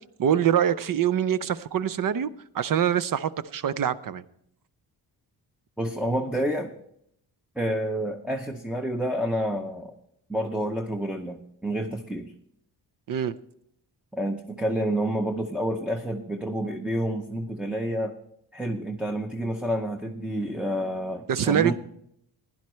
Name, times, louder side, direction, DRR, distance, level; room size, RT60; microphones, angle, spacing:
voice 1, 0.2-2.3 2.5-4.2 13.1-13.3 21.3-21.7, right 9 dB, 50° right, 15 dB, 0.6 m, -24 dB
voice 2, 5.8-6.7 7.6-9.9 10.3-12.3 14.1-18.1 18.5-21.7, equal, ahead, 4 dB, 0.6 m, -29 dB
15.5 x 10.5 x 3.1 m, 0.73 s
wide cardioid pair, 130°, 42 cm